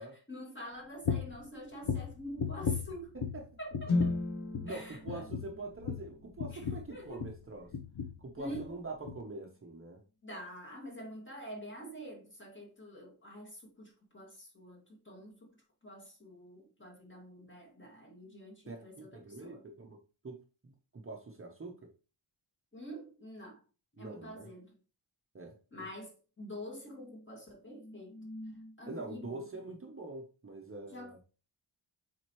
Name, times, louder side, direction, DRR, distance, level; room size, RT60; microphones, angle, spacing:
voice 1, 0.0-3.2 3.6-4.2 4.7-5.2 6.5-7.2 8.4-8.8 10.2-15.6 15.8-19.6 22.7-23.6 24.0-24.8 25.7-29.4 30.9-31.2, equal, 25° left, 2.0 m, -46 dB
sound 1, 1.0-1.4 1.8-3.5 3.7-4.3 4.5-4.8 5.1-7.4 7.7-8.2 8.5-8.7 9.1-9.2, left 6 dB, 70° left, 0.9 m, -36 dB
voice 2, 3.1-3.5 3.9-4.0 4.6-7.7 8.2-10.0 18.7-21.9 24.0-24.5 25.3-25.6 28.9-31.2, right 2 dB, 30° right, 0.8 m, -45 dB
sound 2, 3.9-7.9, left 2 dB, 90° left, 1.7 m, -37 dB
7.5 x 4.2 x 3.0 m
wide cardioid pair, 160°, 46 cm